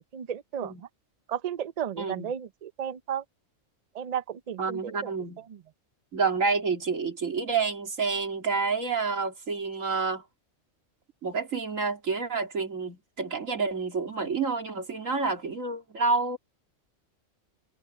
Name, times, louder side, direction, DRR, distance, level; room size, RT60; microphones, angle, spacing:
voice 1, 0.1-0.9 1.3-3.2 3.9-5.1, right 9 dB, 50° right, 0.4 m, -34 dB
voice 2, 2.0-2.3 4.6-5.4 6.1-10.2 11.2-16.4, right 4 dB, 80° right, 2.9 m, -29 dB
omnidirectional pair, 1.3 m